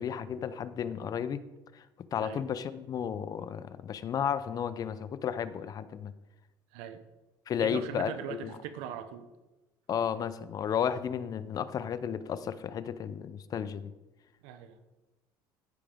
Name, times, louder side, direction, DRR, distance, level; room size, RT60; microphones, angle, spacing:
voice 1, 0.0-1.4 1.7-1.8 2.1-6.1 7.5-8.5 9.9-13.9, left 8 dB, 45° left, 14 dB, 0.5 m, -33 dB
voice 2, 6.7-7.0 7.6-9.3 14.4-14.8, right 9 dB, 85° right, 10 dB, 0.7 m, -40 dB
14.5 x 5.0 x 3.5 m, 1.1 s
supercardioid pair, 95°, 9 cm